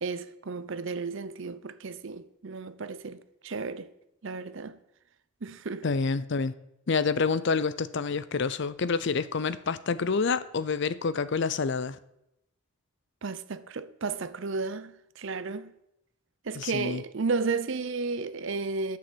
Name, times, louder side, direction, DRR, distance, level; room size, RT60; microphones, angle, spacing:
voice 1, 0.0-3.9 4.2-4.8 5.4-5.9 13.2-15.7 16.4-19.0, right 4 dB, 55° right, 0.6 m, -33 dB
voice 2, 5.8-6.5 6.9-12.0 16.6-17.0, left 4 dB, 50° left, 0.5 m, -28 dB
11.0 x 6.8 x 7.8 m
head